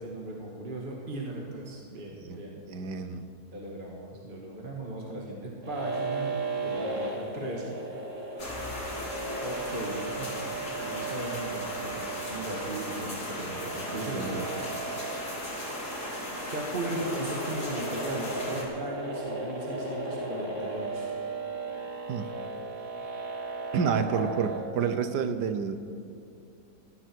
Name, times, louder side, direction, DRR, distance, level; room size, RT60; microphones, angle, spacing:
voice 1, 0.0-2.5 3.5-6.3 6.6-7.8 8.9-10.4 10.8-14.5 15.1-15.6 16.5-21.1 24.1-24.2, right 1 dB, 30° right, -2 dB, 2.0 m, -37 dB
voice 2, 2.7-3.2 14.0-14.3 22.1-22.3 23.7-25.8, right 6 dB, 70° right, 9 dB, 1.5 m, -29 dB
sound 1, 5.6-24.6, right 3 dB, 45° right, 2.4 m, -36 dB
sound 2, 8.4-18.6, left 1 dB, 70° left, 4.2 m, -37 dB
18.5 x 16.0 x 4.7 m, 2.7 s
omnidirectional pair, 1.9 m